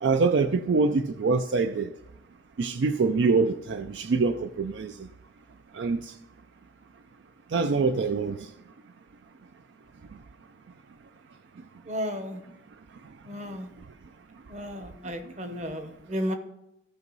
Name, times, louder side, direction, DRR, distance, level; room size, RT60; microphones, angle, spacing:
voice 1, 0.0-1.9 2.6-5.1 5.7-6.1 7.5-8.5 15.4-15.6, right 4 dB, 70° right, 0.4 m, -25 dB
voice 2, 11.9-12.4 13.3-13.7 14.5-16.3, equal, 40° right, 0.9 m, -33 dB
15.0 x 5.4 x 4.0 m
head